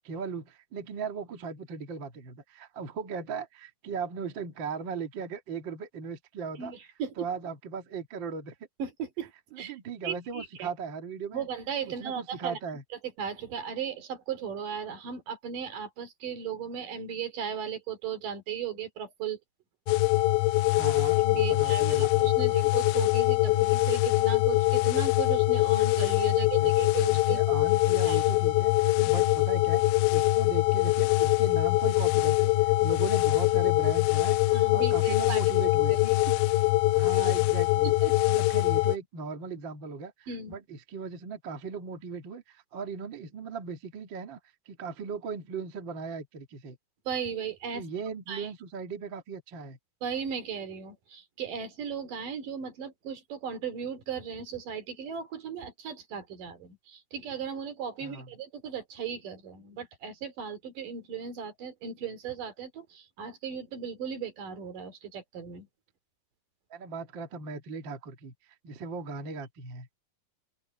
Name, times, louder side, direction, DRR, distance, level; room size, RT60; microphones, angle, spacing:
voice 1, 0.0-6.7 7.2-8.5 9.5-11.5 11.9-12.8 20.7-22.3 26.3-29.8 30.1-34.4 34.7-36.0 36.9-37.9 38.3-44.4 44.6-46.8 47.7-49.8 58.0-58.3 66.7-69.9, right 5 dB, 45° right, 1.8 m, -38 dB
voice 2, 6.6-7.1 8.8-9.3 9.6-9.7 10.0-10.7 11.3-12.6 13.2-19.4 21.2-27.4 28.0-28.2 29.0-29.1 34.5-35.4 35.8-36.2 37.8-38.2 40.3-40.6 47.1-47.8 48.3-48.5 50.0-65.7, right 7 dB, 60° right, 4.2 m, -36 dB
sound 1, 19.9-39.0, left 19 dB, 90° left, 2.6 m, -23 dB
open air
omnidirectional pair, 4.4 m